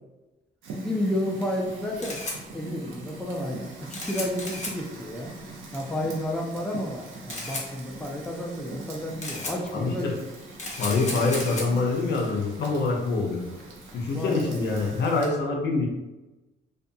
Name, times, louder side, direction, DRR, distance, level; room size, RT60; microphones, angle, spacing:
Fire, 0.6-15.3, right 2 dB, 85° right, 0.6 m, -42 dB
voice 1, 0.8-2.2 2.5-5.3 5.7-10.1 14.0-14.6, left 1 dB, 5° left, 0 dB, 0.4 m, -31 dB
Camera, 1.6-15.0, left 2 dB, 35° left, 0.9 m, -38 dB
voice 2, 9.7-10.1 10.8-13.4 13.9-15.9, left 3 dB, 60° left, 0 dB, 0.6 m, -25 dB
2.4 x 2.3 x 2.6 m, 1.1 s
cardioid pair, 90°, 20 cm